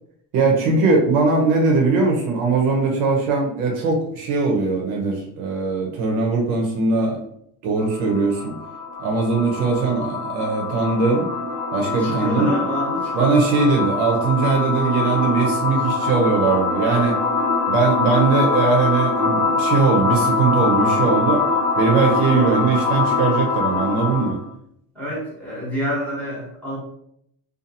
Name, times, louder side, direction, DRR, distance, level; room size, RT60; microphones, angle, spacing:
voice 1, 0.3-7.2 7.6-8.5 9.0-11.3 11.7-12.5 13.1-17.2 17.7-21.4 21.8-24.4, right 4 dB, 55° right, 1 dB, 0.7 m, -20 dB
sound 1, 7.8-24.4, left 4 dB, 75° left, 0.9 m, -23 dB
voice 2, 12.0-13.3 24.9-26.8, equal, 5° left, -7 dB, 1.0 m, -28 dB
2.6 x 2.5 x 2.6 m, 0.71 s
cardioid pair, 150°, 37 cm